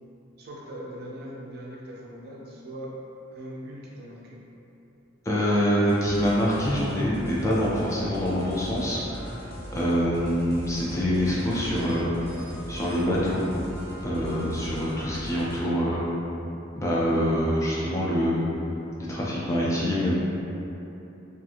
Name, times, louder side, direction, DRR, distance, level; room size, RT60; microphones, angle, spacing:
voice 1, 0.4-3.0 3.3-4.4, right 1 dB, 55° right, -4 dB, 0.4 m, -40 dB
voice 2, 5.3-9.4 9.7-12.1 12.7-13.4 14.0-16.0 16.8-18.4 19.1-20.1, equal, 15° left, -7 dB, 0.3 m, -25 dB
sound 1, 5.9-15.6, equal, 55° left, 0.7 m, -39 dB
2.5 x 2.4 x 2.8 m, 2.9 s
head